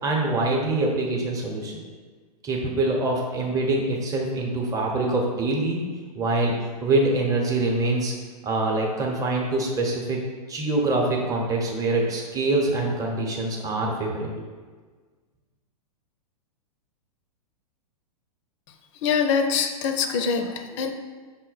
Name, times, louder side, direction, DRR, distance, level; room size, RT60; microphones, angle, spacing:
voice 1, 0.0-1.8 2.4-5.8 6.1-6.5 6.8-8.1 8.4-10.2 10.5-14.4, right 2 dB, 15° right, -1 dB, 0.8 m, -24 dB
voice 2, 19.0-20.9, left 6 dB, 50° left, 7 dB, 0.5 m, -24 dB
5.8 x 2.1 x 4.0 m, 1.4 s
hypercardioid pair, 115°, 20 cm